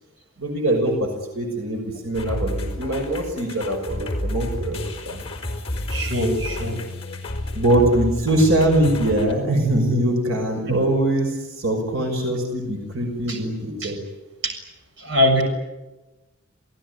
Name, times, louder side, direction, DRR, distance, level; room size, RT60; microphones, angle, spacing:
voice 1, 0.4-5.2 7.5-14.0, right 1 dB, 85° right, 3 dB, 6.1 m, -22 dB
sound 1, 2.1-9.4, left 1 dB, 30° left, 4.3 m, -30 dB
voice 2, 5.9-6.8 10.7-10.8 13.3-13.4 13.8-13.9 14.4-14.5 15.0-15.4, left 1 dB, 60° right, 4 dB, 7.1 m, -22 dB
29.0 x 18.5 x 9.9 m, 1.1 s
head